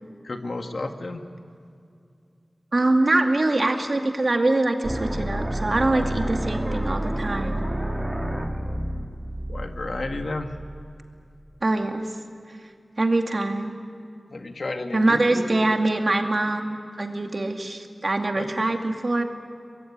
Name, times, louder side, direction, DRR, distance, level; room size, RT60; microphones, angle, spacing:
voice 1, 0.2-1.2 8.3-8.8 9.3-10.5 14.3-15.4 18.4-18.5, left 2 dB, 75° left, 5 dB, 1.9 m, -33 dB
voice 2, 2.7-7.6 11.6-12.0 13.0-13.7 14.9-19.2, right 2 dB, 55° right, 4 dB, 2.4 m, -23 dB
sound 1, 4.8-10.8, right 1 dB, 20° right, 2.9 m, -29 dB
23.5 x 21.5 x 9.6 m, 2.4 s
wide cardioid pair, 55°, 0 cm